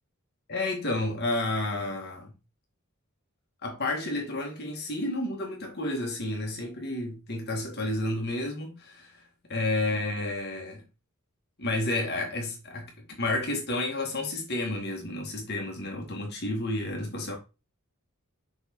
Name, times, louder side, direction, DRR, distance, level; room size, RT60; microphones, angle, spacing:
voice 1, 0.5-2.3 3.6-9.2 9.5-10.8 11.6-12.9 13.2-17.4, left 2 dB, 45° left, 2.2 m, -31 dB
6.3 x 4.9 x 4.7 m
head